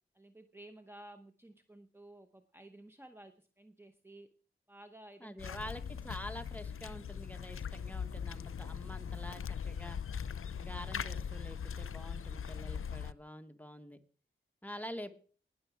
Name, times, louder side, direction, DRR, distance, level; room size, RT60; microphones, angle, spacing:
voice 1, 0.1-4.3 4.7-6.2 10.4-10.7, right 1 dB, 10° right, 7 dB, 0.9 m, -55 dB
voice 2, 5.2-10.0 10.6-14.0 14.6-15.2, equal, 5° left, 7 dB, 1.4 m, -47 dB
sound 1, 5.4-13.1, left 7 dB, 80° left, 0.5 m, -40 dB
19.0 x 6.9 x 4.9 m, 0.41 s
wide cardioid pair, 80°, 21 cm